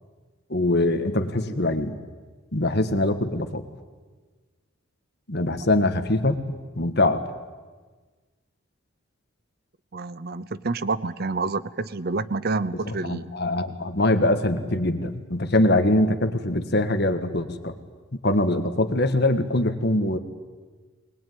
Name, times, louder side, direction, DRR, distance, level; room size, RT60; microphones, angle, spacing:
voice 1, 0.5-2.0 2.5-3.6 5.3-7.2 13.0-17.7 18.2-20.2, left 1 dB, 50° left, 9 dB, 1.6 m, -23 dB
voice 2, 9.9-13.3, right 3 dB, 45° right, 15 dB, 0.7 m, -28 dB
22.0 x 20.5 x 9.4 m, 1.4 s
head